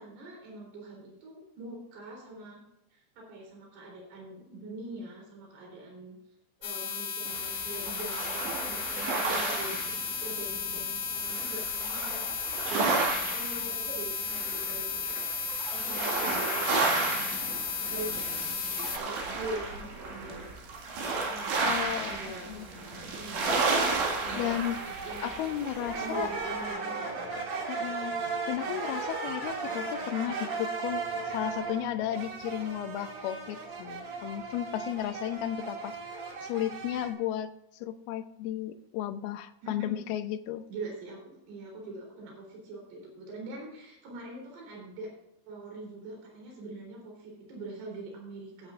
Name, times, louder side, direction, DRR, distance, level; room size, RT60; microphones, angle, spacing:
voice 1, 0.0-2.6 2.9-6.2 6.6-15.2 15.7-17.2 17.8-20.5 21.3-21.8 22.1-23.5 24.2-24.5 25.0-25.3 25.9-27.2 39.6-39.9 40.7-45.1 45.5-48.7, right 2 dB, 75° right, -1 dB, 5.8 m, -43 dB
sound 1, 6.6-19.0, left 6 dB, 50° left, 2.4 m, -34 dB
sound 2, 7.3-26.7, right 3 dB, 90° right, 4.4 m, -33 dB
voice 2, 21.6-22.2 22.5-22.7 24.4-24.8 25.2-26.3 27.7-31.0 31.3-36.0 36.4-37.5 37.7-40.6, left 11 dB, 75° left, 9 dB, 2.5 m, -34 dB
sound 3, 24.6-37.1, right 4 dB, 50° right, 3.9 m, -36 dB
18.5 x 8.8 x 2.6 m, 0.83 s
omnidirectional pair, 4.9 m